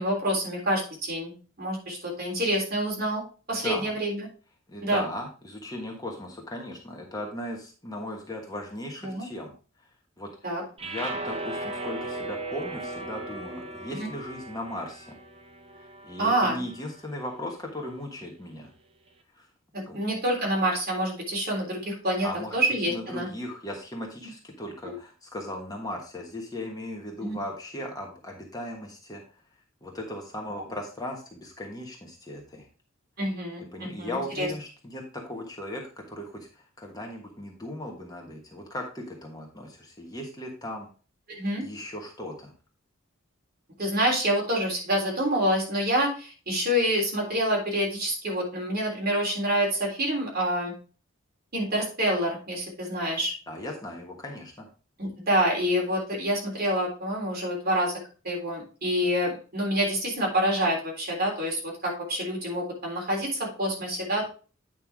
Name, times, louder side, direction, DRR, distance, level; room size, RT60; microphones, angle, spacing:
voice 1, 0.0-3.2 3.5-4.3 4.8-5.0 9.0-9.3 10.4-10.6 13.9-14.1 16.2-16.6 19.7-23.3 24.9-25.0 27.2-27.4 33.2-34.5 41.3-41.7 43.8-50.7 51.5-53.3 55.0-57.9 58.2-64.3, equal, 45° right, -2 dB, 3.5 m, -27 dB
voice 2, 3.5-3.9 4.7-9.5 9.8-9.9 10.2-10.5 10.8-15.2 15.8-18.7 19.4-19.5 19.9-20.0 22.2-22.6 22.9-29.2 29.8-32.7 33.7-40.9 41.6-42.5 53.5-54.7, left 1 dB, 20° left, 0 dB, 1.4 m, -37 dB
sound 1, 10.8-17.0, right 2 dB, 30° right, 0.9 m, -37 dB
9.0 x 5.5 x 3.6 m, 0.35 s
head